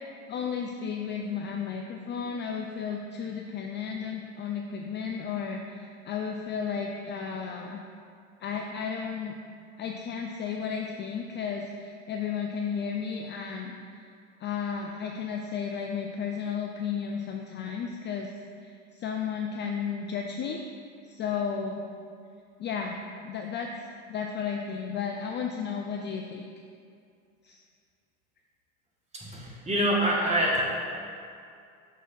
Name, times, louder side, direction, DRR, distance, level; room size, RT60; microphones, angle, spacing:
voice 1, 0.3-7.8 8.4-9.3 9.8-14.1 14.4-18.3 18.6-20.6 21.0-21.8 22.6-23.0 23.2-23.7 24.1-26.5 27.4-27.6, left 6 dB, 30° left, 2 dB, 0.4 m, -33 dB
voice 2, 29.1-30.6, right 1 dB, 15° right, -3 dB, 1.6 m, -25 dB
6.5 x 3.4 x 5.9 m, 2.4 s
hypercardioid pair, 95°, 39 cm